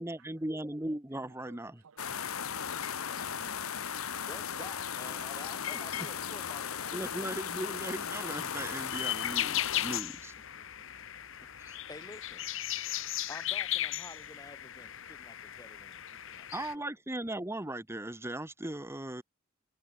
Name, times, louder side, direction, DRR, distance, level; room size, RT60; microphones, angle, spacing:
voice 1, 0.0-1.8 6.9-10.3 11.6-11.8 16.5-19.2, right 1 dB, 10° right, 1.3 m, -38 dB
voice 2, 1.2-1.6 1.8-2.4 2.9-4.4 5.2-5.3, right 6 dB, 90° right, 0.7 m, -59 dB
sound 1, 2.0-10.0, left 8 dB, 85° left, 1.1 m, -36 dB
voice 3, 4.3-7.3 10.5-11.1 11.4-12.9 13.3-16.9, left 2 dB, 20° left, 1.8 m, -51 dB
sound 2, 8.9-16.7, left 13 dB, 65° left, 1.5 m, -36 dB
head